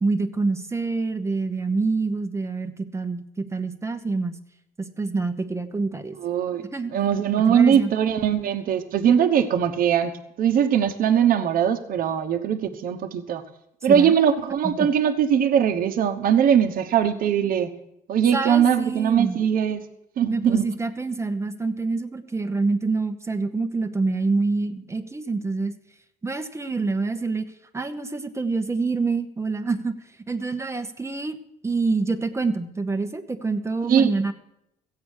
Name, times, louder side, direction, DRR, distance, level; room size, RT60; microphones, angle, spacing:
voice 1, 0.0-4.4 4.8-6.2 6.7-6.9 7.5-7.9 13.9-14.1 18.3-19.4 20.3-25.7 26.2-30.0 30.3-31.4 31.6-34.3, right 3 dB, 15° right, 7 dB, 0.9 m, -26 dB
voice 2, 6.2-6.7 6.9-13.4 13.8-17.7 18.1-19.8 20.2-20.6 33.9-34.1, right 8 dB, 55° right, 4 dB, 1.0 m, -21 dB
14.5 x 8.5 x 6.4 m, 0.79 s
cardioid pair, 110°, 17 cm